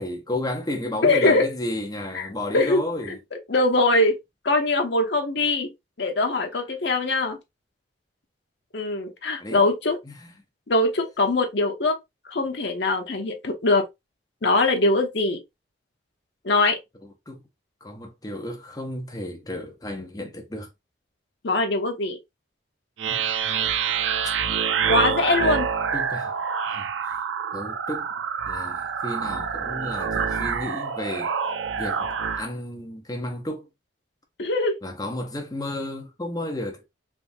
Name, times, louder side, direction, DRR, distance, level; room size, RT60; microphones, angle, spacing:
voice 1, 0.0-3.2 9.4-9.6 10.0-10.3 17.0-17.4 17.8-20.7 23.1-23.3 25.9-26.3 26.7-27.2 27.5-28.2 28.5-31.3 31.8-32.1 32.3-33.7 34.8-36.9, left 1 dB, 20° left, 0.7 m, -33 dB
voice 2, 1.0-1.5 2.1-2.3 2.5-4.2 4.4-5.7 6.0-7.4 8.7-10.0 10.7-12.0 12.3-13.8 14.4-15.4 16.4-16.8 21.4-22.2 24.2-24.3 24.9-25.7 34.4-34.8, left 2 dB, 60° left, 0.7 m, -22 dB
sound 1, 23.0-32.5, right 7 dB, 70° right, 0.4 m, -27 dB
3.4 x 2.5 x 2.6 m
head